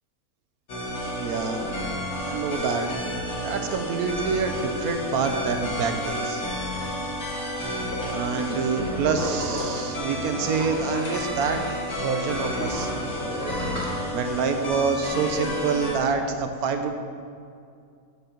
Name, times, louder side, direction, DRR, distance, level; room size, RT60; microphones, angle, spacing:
sound 1, 0.7-16.0, equal, 75° left, 2.0 m, -31 dB
voice 1, 1.2-1.6 2.2-3.0 3.4-6.4 8.1-12.9 14.1-16.9, right 5 dB, 75° right, 6 dB, 1.3 m, -27 dB
sound 2, 7.6-11.8 12.1-14.6 15.0-15.1, left 1 dB, 55° left, 2.6 m, -34 dB
8.1 x 6.5 x 6.6 m, 2.3 s
omnidirectional pair, 1.6 m